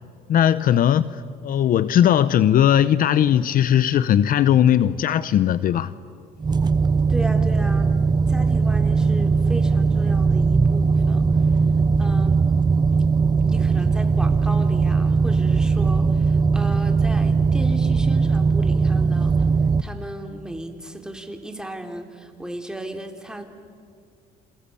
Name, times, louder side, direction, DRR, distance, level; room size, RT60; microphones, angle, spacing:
voice 1, 0.3-1.2 1.4-5.9, left 10 dB, 55° left, 0.8 m, -18 dB
sound 1, 6.4-19.8, right 4 dB, 25° right, 0.7 m, -19 dB
voice 2, 7.1-7.9 8.3-11.2 12.0-12.4 13.4-19.4 19.8-23.4, right 1 dB, 5° right, 3.0 m, -35 dB
29.0 x 22.5 x 8.5 m
cardioid pair, 110°, 17 cm